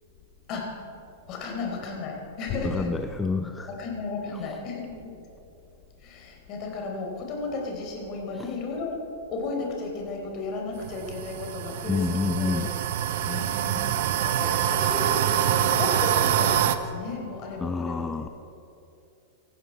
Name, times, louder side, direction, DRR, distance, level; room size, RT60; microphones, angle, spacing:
voice 1, 1.3-2.9 3.7-5.1 6.0-9.0 9.3-12.7 13.3-13.9 14.2-18.3, left 3 dB, 40° left, 0 dB, 4.0 m, -34 dB
voice 2, 2.6-3.7 4.3-4.6 8.3-8.5 11.9-12.7 17.6-18.3, left 4 dB, 15° left, 8 dB, 0.5 m, -28 dB
sound 1, 10.8-16.7, right 10 dB, 60° right, 0.8 m, -25 dB
17.5 x 14.5 x 4.7 m, 2.7 s
figure-of-eight pair, 100°, 0 cm